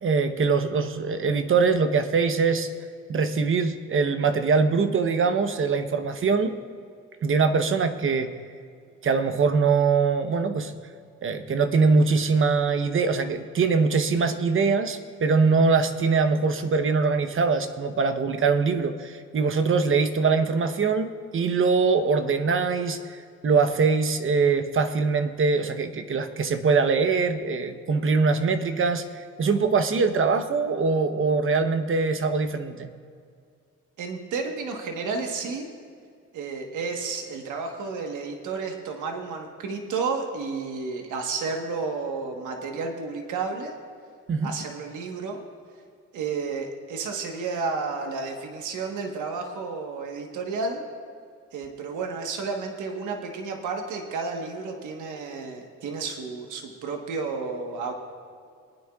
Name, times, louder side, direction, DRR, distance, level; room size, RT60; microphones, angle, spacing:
voice 1, 0.0-2.7 3.1-6.6 7.2-8.3 9.0-10.7 11.2-32.9 44.3-44.5, right 4 dB, 45° right, 8 dB, 0.9 m, -23 dB
voice 2, 34.0-35.7 36.3-43.7 44.4-45.4 46.1-50.8 51.5-57.9, right 4 dB, 80° right, 3 dB, 1.3 m, -31 dB
26.0 x 9.5 x 2.4 m, 2.3 s
cardioid pair, 90°, 30 cm